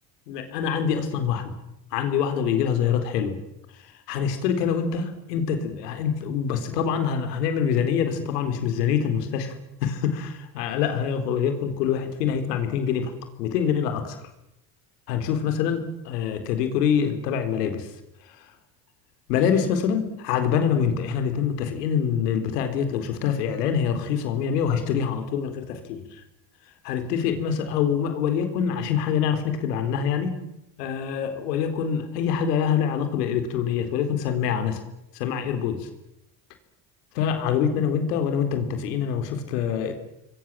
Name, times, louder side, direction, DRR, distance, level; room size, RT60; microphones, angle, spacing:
voice 1, 0.3-1.5 1.9-3.4 4.1-9.5 9.8-13.1 13.4-14.2 15.1-17.9 19.3-26.0 26.8-30.4 30.8-34.8 35.1-35.9 37.1-39.9, left 7 dB, 90° left, 8 dB, 4.1 m, -25 dB
28.0 x 22.5 x 7.5 m, 0.86 s
supercardioid pair, 80°, 47 cm